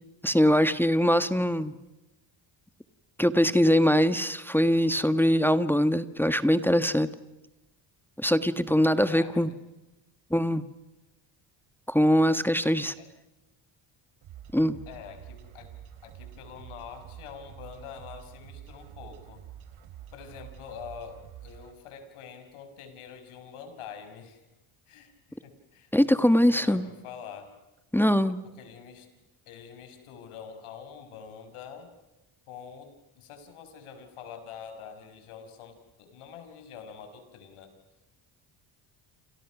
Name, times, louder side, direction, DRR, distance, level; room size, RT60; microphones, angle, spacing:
voice 1, 0.2-1.7 3.2-7.1 8.2-9.5 10.3-10.6 11.9-12.9 14.5-14.8 25.9-26.8 27.9-28.4, equal, 5° left, 11 dB, 1.4 m, -22 dB
voice 2, 8.9-9.6 13.0-13.1 14.9-15.7 16.0-19.4 20.1-24.5 24.9-27.5 28.3-29.1 29.5-31.9 32.5-37.7, left 7 dB, 80° left, 8 dB, 5.8 m, -45 dB
sound 1, 14.2-21.7, right 10 dB, 70° right, 3.7 m, -47 dB
29.5 x 28.5 x 6.1 m, 1.0 s
supercardioid pair, 85°, 50 cm